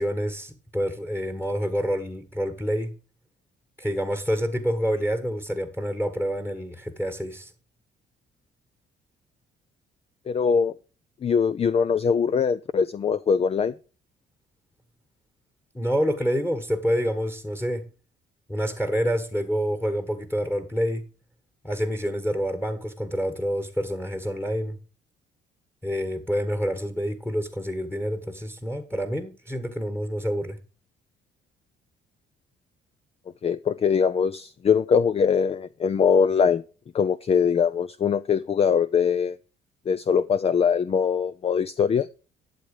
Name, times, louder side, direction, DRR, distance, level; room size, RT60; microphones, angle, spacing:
voice 1, 0.0-2.9 3.8-7.5 15.7-17.9 18.5-21.0 21.6-24.8 25.8-30.6, equal, 10° left, 1.6 m, -27 dB
voice 2, 10.3-10.7 11.2-13.7 33.4-36.6 36.9-39.4 39.9-42.1, left 6 dB, 35° left, 0.5 m, -22 dB
12.0 x 8.0 x 5.0 m
cardioid pair, 100°, 19 cm